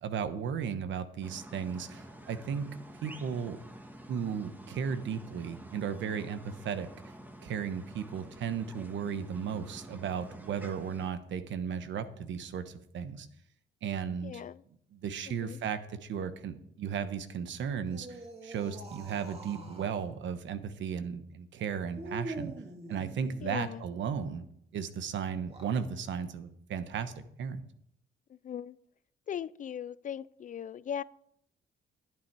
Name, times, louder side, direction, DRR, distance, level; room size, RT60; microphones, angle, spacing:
voice 1, 0.0-2.6 3.0-3.6 4.1-7.1 7.4-13.3 13.8-14.4 14.9-22.5 22.9-24.4 24.7-27.1 27.4-27.6, right 7 dB, 70° right, 1.1 m, -35 dB
sound 1, 1.2-11.1, right 1 dB, 10° right, 1.5 m, -49 dB
voice 2, 14.2-14.6 15.3-15.6 23.4-23.8 28.3-28.8 29.3-31.0, left 9 dB, 40° left, 0.4 m, -39 dB
sound 2, 17.8-20.1 21.9-23.7 25.3-25.9, right 2 dB, 30° right, 2.2 m, -44 dB
11.0 x 9.2 x 4.7 m
cardioid pair, 90°, 20 cm